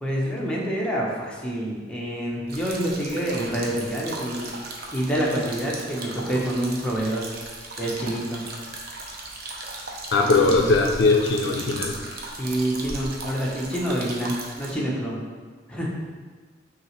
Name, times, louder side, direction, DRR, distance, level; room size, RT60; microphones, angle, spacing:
voice 1, 0.0-4.5 4.9-7.3 7.8-8.5 10.2-10.6 12.4-15.2 15.7-15.9, right 1 dB, 5° left, -5 dB, 0.7 m, -27 dB
sound 1, 2.5-14.7, right 2 dB, 60° right, 0.6 m, -37 dB
voice 2, 10.1-12.0, left 3 dB, 70° left, 3 dB, 0.4 m, -20 dB
5.8 x 2.4 x 3.1 m, 1.4 s
head